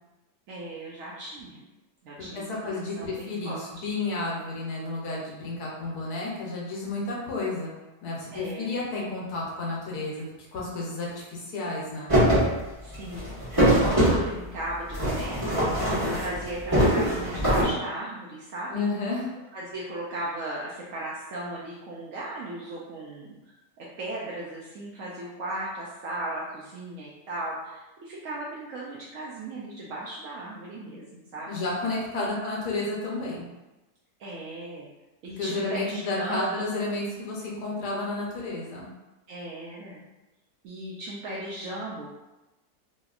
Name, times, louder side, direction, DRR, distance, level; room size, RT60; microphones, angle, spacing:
voice 1, 0.5-1.7 2.0-3.6 8.3-8.7 12.8-13.3 13.6-18.8 19.5-23.4 23.8-31.6 32.2-32.3 34.2-34.9 35.2-36.5 39.3-40.1 40.6-42.1, right 1 dB, 70° right, -5 dB, 0.8 m, -37 dB
voice 2, 2.2-7.7 8.0-12.1 18.7-19.3 31.5-33.4 35.4-38.9, left 2 dB, 70° left, -4 dB, 1.2 m, -31 dB
Paper Box Falling and Sliding, 12.1-12.5 12.8-14.2 14.9-16.4 16.7-17.6, equal, 15° right, 1.2 m, -22 dB
3.0 x 2.8 x 2.4 m, 1.0 s
omnidirectional pair, 1.8 m